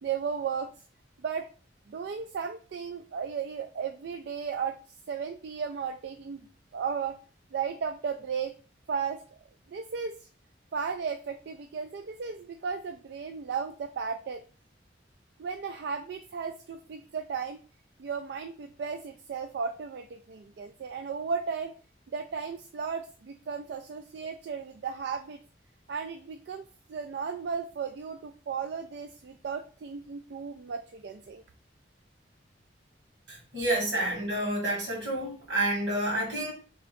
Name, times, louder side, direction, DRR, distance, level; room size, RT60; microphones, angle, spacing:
voice 1, 0.0-0.8 1.2-1.5 1.9-4.8 5.1-7.2 7.5-8.5 8.9-9.2 9.7-10.3 10.7-14.4 15.4-17.6 18.0-21.7 22.1-25.4 25.9-31.4, right 6 dB, 65° right, 7 dB, 0.3 m, -35 dB
voice 2, 33.3-36.5, right 1 dB, 85° right, -2 dB, 2.1 m, -29 dB
3.6 x 3.4 x 3.5 m, 0.38 s
head